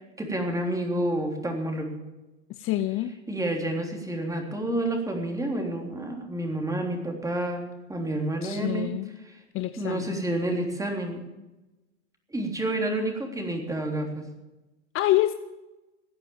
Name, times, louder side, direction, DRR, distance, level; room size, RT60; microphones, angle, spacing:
voice 1, 0.2-2.0 3.3-7.6 7.9-8.9 9.3-9.4 9.8-11.2 12.3-14.3, right 1 dB, 10° right, 2 dB, 3.5 m, -29 dB
voice 2, 2.6-3.2 8.4-9.1 9.5-10.2 14.9-15.3, left 15 dB, 40° left, 11 dB, 0.7 m, -26 dB
16.5 x 9.8 x 7.2 m, 1.0 s
hypercardioid pair, 90°, 34 cm